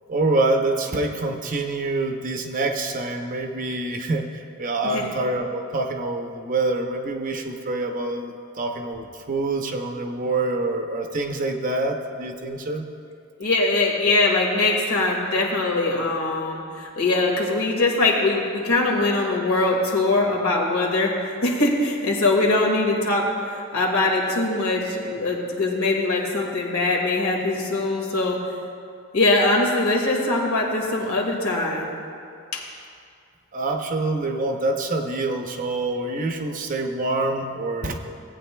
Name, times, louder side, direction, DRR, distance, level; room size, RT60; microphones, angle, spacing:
voice 1, 0.1-12.8 33.5-38.0, right 2 dB, 40° right, 4 dB, 0.7 m, -26 dB
voice 2, 13.4-21.2 21.4-28.4 29.1-31.9 32.5-32.6, left 2 dB, 85° left, -1 dB, 1.8 m, -22 dB
17.5 x 8.7 x 2.2 m, 2.4 s
head